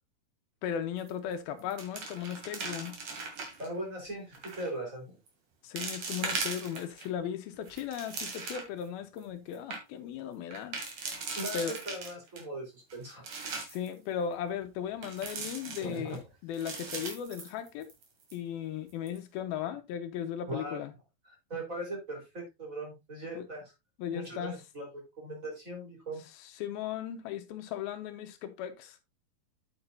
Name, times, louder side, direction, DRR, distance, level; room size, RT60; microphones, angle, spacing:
voice 1, 0.6-2.9 5.6-10.8 11.5-11.8 13.7-17.9 18.3-20.9 23.4-23.5 24.0-24.6 26.4-29.0, left 9 dB, 80° left, 2.7 m, -37 dB
sound 1, 1.0-1.3 1.6-3.7 4.3-4.7 5.3-5.4 5.8-7.1 7.5-8.8 9.2-9.3 9.5-9.8 10.5-12.4 12.9-13.9 15.0-16.2 16.5-18.0 18.3-18.4 18.9-19.2, right 4 dB, 50° right, 3.2 m, -39 dB
voice 2, 3.6-5.2 11.4-13.3 15.8-16.2 20.5-20.8 21.3-23.7 24.1-26.2, right 1 dB, 20° right, 4.3 m, -39 dB
8.9 x 8.5 x 2.7 m
omnidirectional pair, 4.5 m